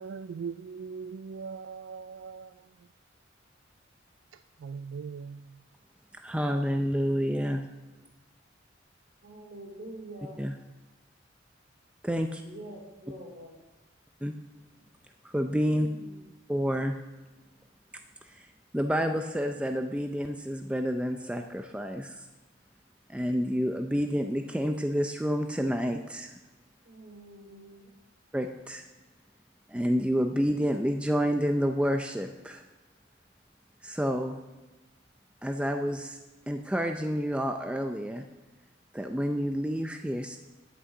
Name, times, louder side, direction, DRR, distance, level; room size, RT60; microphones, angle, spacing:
voice 1, 0.0-2.7 4.6-5.6, right 5 dB, 80° right, 0.3 m, -40 dB
voice 2, 6.2-7.6 10.4-10.5 12.0-12.4 14.2-14.3 15.3-15.9 16.5-16.9 18.3-18.4 18.7-22.2 23.1-26.3 28.3-28.8 29.7-32.6 33.8-34.4 35.4-36.2 36.5-38.2 38.9-40.4, equal, 5° right, 0.5 m, -29 dB
voice 3, 9.2-10.4 12.4-13.6 15.6-16.2 26.8-27.9, right 1 dB, 55° right, 3.4 m, -45 dB
11.0 x 6.2 x 7.9 m
head